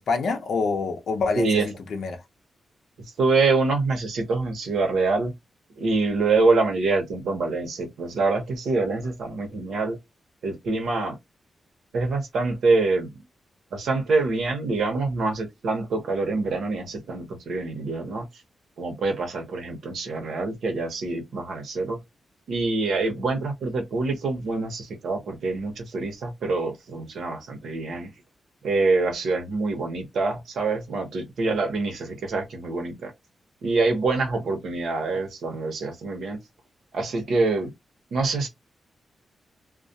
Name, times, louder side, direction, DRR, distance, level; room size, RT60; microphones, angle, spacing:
voice 1, 0.0-2.2 23.2-23.3, left 4 dB, 65° left, 0.6 m, -27 dB
voice 2, 1.4-1.7 3.2-5.3 5.8-10.0 10.4-11.2 11.9-13.1 13.7-18.2 18.8-22.0 22.5-28.1 28.6-33.1 33.6-36.4 36.9-37.7 38.1-38.5, right 3 dB, 80° right, 0.9 m, -25 dB
2.3 x 2.1 x 2.7 m
wide cardioid pair, 160°, 0 cm